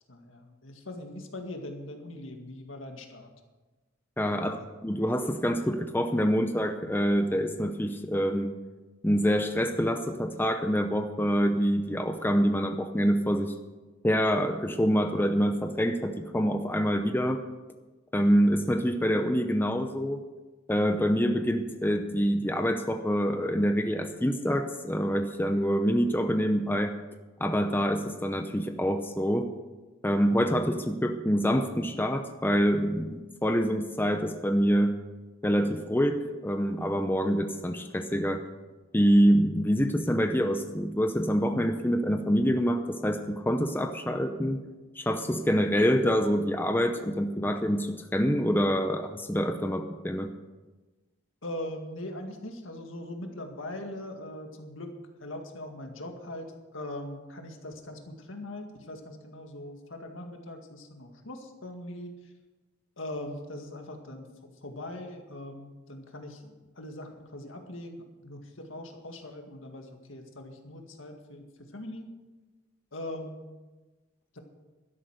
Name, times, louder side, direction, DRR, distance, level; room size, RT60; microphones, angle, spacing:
voice 1, 0.1-3.3 4.3-4.5 51.4-54.9 55.2-62.3 63.0-64.3 64.6-71.5 71.7-72.1 72.9-73.4 74.3-74.4, left 1 dB, 70° left, 4 dB, 2.0 m, -41 dB
voice 2, 4.2-8.5 9.0-13.5 14.0-17.4 18.1-20.2 20.7-26.9 27.4-29.5 30.0-35.0 35.4-38.4 38.9-44.6 45.0-50.3, equal, 10° left, 6 dB, 0.7 m, -26 dB
12.5 x 11.0 x 6.4 m, 1.2 s
head